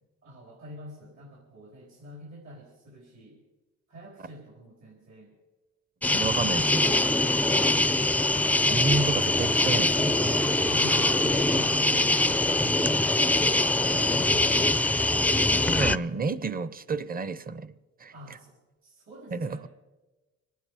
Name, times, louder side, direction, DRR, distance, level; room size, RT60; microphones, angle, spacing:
voice 1, 0.2-3.4 3.9-5.3 10.7-12.9 13.4-15.3 15.8-16.3 18.1-19.7, equal, 65° right, 4.2 m, -46 dB
sound 1, 6.0-16.0, left 2 dB, 5° left, 0.4 m, -23 dB
voice 2, 6.1-6.9 8.7-10.5 15.6-17.7 18.0-18.1 19.3-19.7, right 4 dB, 30° right, 0.8 m, -30 dB
25.5 x 9.5 x 5.0 m
cardioid pair, 90°, 30 cm